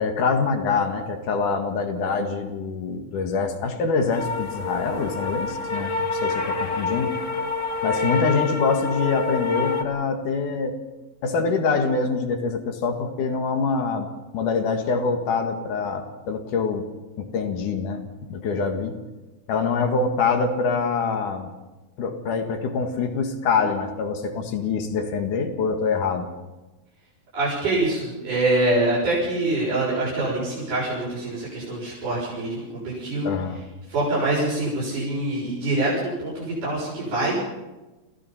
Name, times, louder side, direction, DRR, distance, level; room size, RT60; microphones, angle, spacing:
voice 1, 0.0-7.1 7.8-10.8 11.2-14.1 14.3-16.8 17.2-18.0 18.3-19.0 19.5-21.5 22.0-26.3 33.2-33.6, left 4 dB, 90° left, 5 dB, 3.3 m, -25 dB
sound 1, 4.1-9.8, left 4 dB, 45° left, 1.0 m, -27 dB
voice 2, 27.3-33.3 33.9-37.4, right 2 dB, 85° right, -7 dB, 8.0 m, -25 dB
28.0 x 16.0 x 5.7 m, 1.1 s
omnidirectional pair, 3.5 m